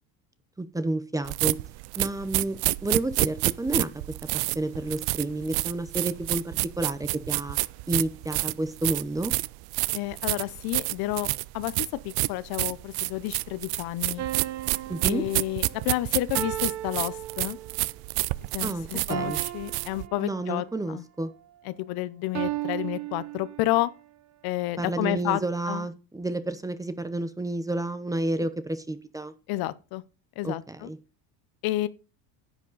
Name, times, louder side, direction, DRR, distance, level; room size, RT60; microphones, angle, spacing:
voice 1, 0.6-1.6 2.0-3.9 4.3-7.6 7.9-9.3 14.9-15.2 18.6-19.4 20.2-21.3 24.8-29.3 30.4-31.0, right 2 dB, 10° right, 0.8 m, -30 dB
sound 1, 1.3-20.1, right 22 dB, 60° right, 0.6 m, -28 dB
voice 2, 9.9-11.3 11.5-14.3 15.0-17.6 18.5-21.0 21.7-23.9 24.4-25.4 25.7-25.9 29.5-30.0 30.4-30.9 31.6-31.9, left 16 dB, 60° left, 0.9 m, -30 dB
sound 2, 14.2-17.9 19.1-20.7 22.3-23.9, right 14 dB, 40° right, 0.9 m, -36 dB
10.0 x 8.2 x 4.1 m
cardioid pair, 130°, 41 cm